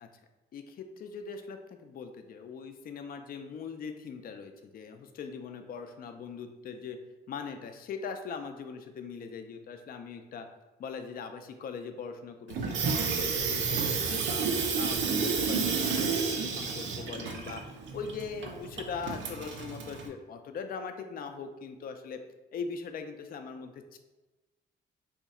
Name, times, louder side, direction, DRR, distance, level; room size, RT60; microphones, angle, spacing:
voice 1, 0.5-7.0 7.3-10.5 10.8-13.8 14.1-14.4 14.8-17.6 17.9-22.2 22.5-24.0, left 5 dB, 50° left, 6 dB, 0.4 m, -41 dB
Water tap faucet / Sink (filling or washing), 12.5-20.1, right 5 dB, 70° right, 0.5 m, -31 dB
2.8 x 2.3 x 4.1 m, 1.1 s
cardioid pair, 90°, 20 cm